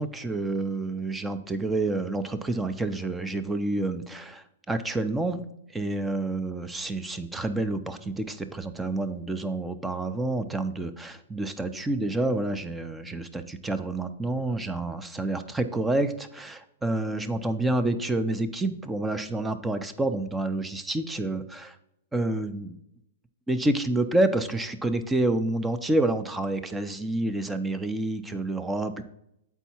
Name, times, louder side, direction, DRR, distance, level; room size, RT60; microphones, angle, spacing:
voice 1, 0.0-5.4 5.7-21.7 22.1-22.8 23.5-29.0, right 2 dB, 10° right, 10 dB, 0.5 m, -28 dB
8.1 x 4.6 x 4.3 m, 0.80 s
hypercardioid pair, 145°, 0 cm